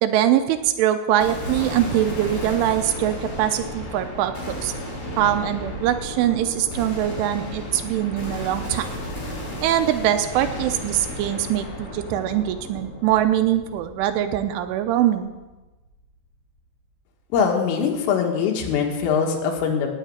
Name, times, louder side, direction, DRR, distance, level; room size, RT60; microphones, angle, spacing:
voice 1, 0.0-4.3 4.6-4.7 5.2-8.9 9.6-15.3, right 11 dB, 80° right, 8 dB, 3.1 m, -22 dB
sound 1, 1.2-15.5, left 1 dB, 50° left, 8.1 m, -34 dB
voice 2, 17.3-19.9, left 6 dB, 85° left, 1 dB, 4.3 m, -22 dB
18.0 x 6.6 x 8.7 m, 1.1 s
omnidirectional pair, 5.7 m